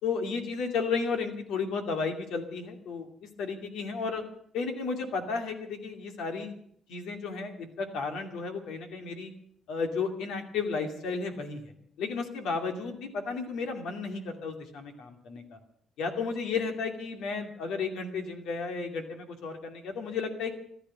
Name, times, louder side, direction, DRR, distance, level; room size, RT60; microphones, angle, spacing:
voice 1, 0.0-3.1 3.4-4.2 4.5-6.5 6.9-9.3 9.7-11.7 12.0-15.6 16.0-20.5, left 4 dB, 85° left, 5 dB, 2.5 m, -33 dB
15.0 x 11.5 x 7.5 m, 0.68 s
cardioid pair, 90°, 0 cm